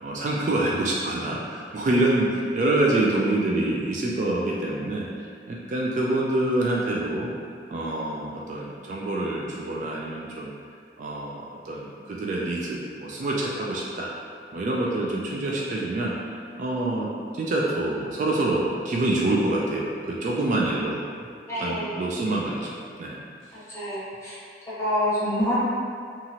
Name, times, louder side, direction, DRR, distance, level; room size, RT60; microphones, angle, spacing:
voice 1, 0.0-5.1 5.5-7.3 7.7-10.5 11.0-14.1 14.5-16.3 16.6-21.0 21.6-23.2, right 2 dB, 45° right, -3 dB, 0.3 m, -26 dB
voice 2, 21.5-21.9 23.5-24.4 24.8-25.5, left 1 dB, 15° left, -11 dB, 0.9 m, -27 dB
2.8 x 2.4 x 2.7 m, 2.2 s
head